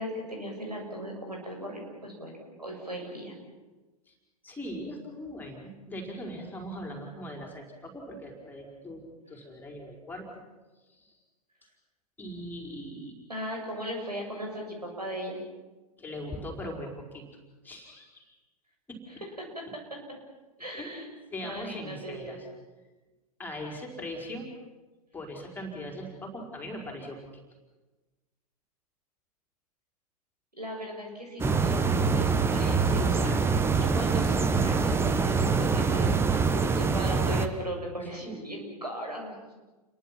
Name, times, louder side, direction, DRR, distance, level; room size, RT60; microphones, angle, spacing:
voice 1, 0.0-2.3 2.6-3.4 13.3-15.4 19.4-19.6 19.9-20.0 20.6-21.1 21.4-22.4 30.6-39.5, equal, 85° right, 1 dB, 7.0 m, -38 dB
voice 2, 4.4-10.3 10.9-11.1 12.2-13.1 16.0-17.2 17.6-18.3 18.9-19.0 20.8-20.9 21.3-22.5 23.4-24.5 25.1-27.2 33.2-33.4 38.2-38.3, equal, 10° left, 0 dB, 4.9 m, -40 dB
sound 1, 31.4-37.5, right 4 dB, 10° right, 1.2 m, -24 dB
29.5 x 22.5 x 6.0 m, 1.2 s
figure-of-eight pair, 100°, 20 cm